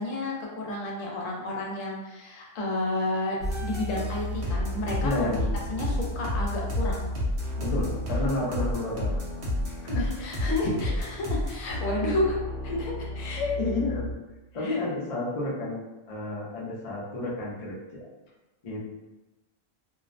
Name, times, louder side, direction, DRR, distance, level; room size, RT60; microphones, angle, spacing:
voice 1, 0.0-5.4 5.7-7.1 9.9-12.4 12.6-12.7 13.2-13.5 14.6-14.9, left 2 dB, 75° left, -2 dB, 0.9 m, -31 dB
sound 1, 3.4-14.1, left 1 dB, 55° right, 0.8 m, -30 dB
voice 2, 5.0-5.5 7.6-9.2 9.7-10.0 12.7-12.9 13.6-14.1 14.5-18.1 18.6-18.9, left 2 dB, 50° left, -6 dB, 0.4 m, -31 dB
2.5 x 2.0 x 2.5 m, 1.1 s
omnidirectional pair, 1.4 m